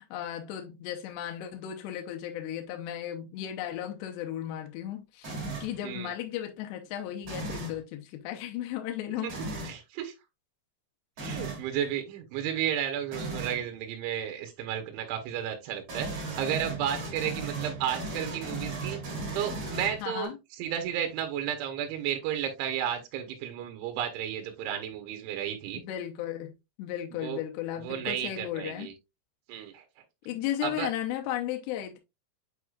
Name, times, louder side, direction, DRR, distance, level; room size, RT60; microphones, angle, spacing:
voice 1, 0.0-9.3 11.7-11.8 20.0-20.4 25.8-26.5 26.8-28.9 30.3-32.0, left 11 dB, 75° left, 2.7 m, -35 dB
sound 1, 5.2-5.8 7.2-7.8 9.3-9.8 11.2-11.7 13.1-13.6 15.9-20.3, right 3 dB, 40° right, 3.2 m, -36 dB
voice 2, 5.8-6.1 9.2-9.3 9.6-10.1 11.2-25.8 27.2-27.4 27.8-28.9 29.5-29.8 30.6-30.9, right 9 dB, 80° right, 3.3 m, -33 dB
8.4 x 4.8 x 2.3 m
omnidirectional pair, 5.5 m